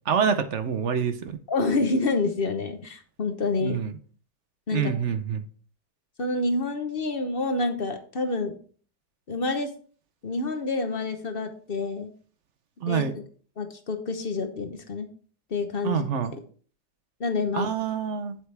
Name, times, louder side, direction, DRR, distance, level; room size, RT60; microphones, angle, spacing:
voice 1, 0.1-1.4 3.6-3.9 4.7-5.4 12.8-13.1 15.8-16.3 17.5-18.4, right 7 dB, 60° right, 0.8 m, -26 dB
voice 2, 1.5-3.8 4.7-4.9 6.2-8.6 9.3-9.7 10.2-12.1 12.8-13.0 13.6-15.1 15.5-16.0 17.2-17.7, left 3 dB, 40° left, 0.9 m, -28 dB
7.9 x 7.9 x 3.3 m
omnidirectional pair, 1.9 m